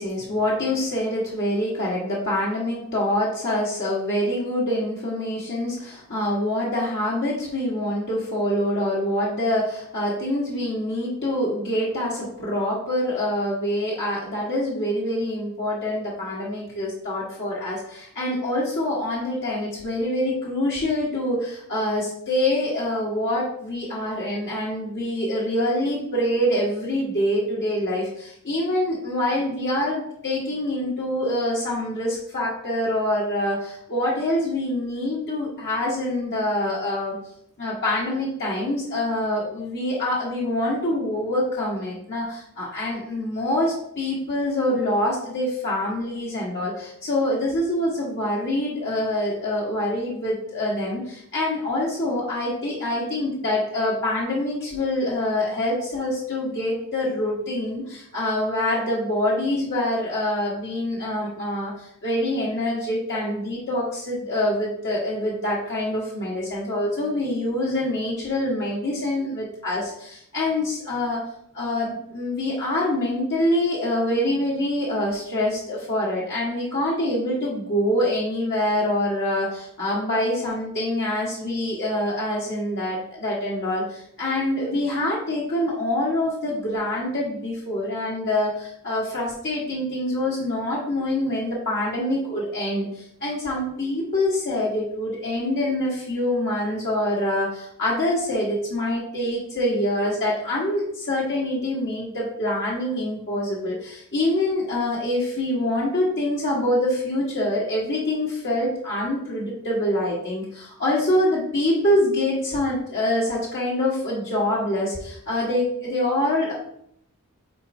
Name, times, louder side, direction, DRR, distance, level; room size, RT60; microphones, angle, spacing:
voice 1, 0.0-37.2 37.6-71.2 71.5-116.5, left 1 dB, 55° left, -5 dB, 1.3 m, -25 dB
8.4 x 4.4 x 2.6 m, 0.71 s
head